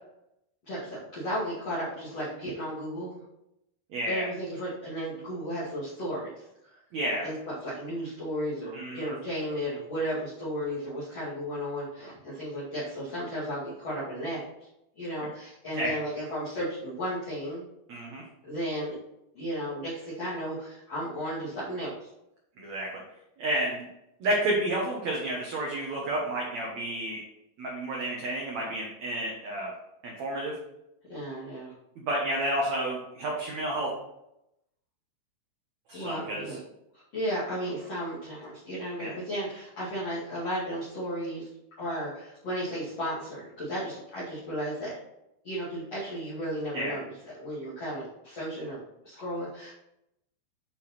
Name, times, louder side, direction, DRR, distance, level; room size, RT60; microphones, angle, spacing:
voice 1, 0.7-3.2 4.0-6.8 7.2-14.7 15.0-17.6 18.5-18.9 19.3-22.1 31.1-31.7 35.9-36.6 37.1-41.5 41.8-44.9 45.4-49.7, equal, 40° left, -10 dB, 2.8 m, -34 dB
voice 2, 3.9-4.3 6.9-7.2 8.7-9.1 15.7-15.9 17.9-18.2 22.6-22.9 23.4-23.8 24.2-27.2 27.6-29.7 30.0-30.5 32.0-33.9 35.9-36.6 39.0-39.1 46.7-46.9, right 1 dB, 75° right, -2 dB, 1.6 m, -30 dB
8.6 x 5.8 x 4.3 m, 0.84 s
omnidirectional pair, 5.2 m